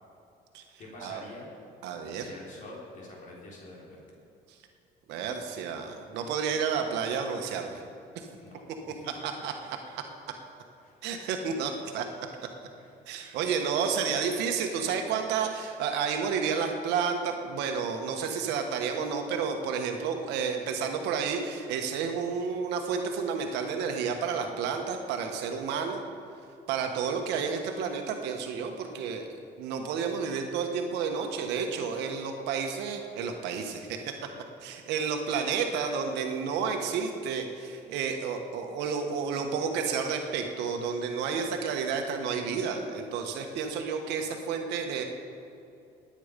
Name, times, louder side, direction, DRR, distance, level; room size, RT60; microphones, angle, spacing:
voice 1, 0.8-1.5 2.1-4.0 8.4-9.2 10.8-11.0 12.8-12.9, left 2 dB, 50° left, -3 dB, 3.9 m, -47 dB
voice 2, 1.8-2.3 5.1-7.8 8.1-8.3 9.2-10.0 11.0-12.1 12.4-12.5 13.1-26.0 26.7-29.3 29.6-34.1 34.6-45.0, right 6 dB, 90° right, 4 dB, 1.3 m, -31 dB
19.5 x 8.9 x 5.2 m, 2.6 s
cardioid pair, 110°, 17 cm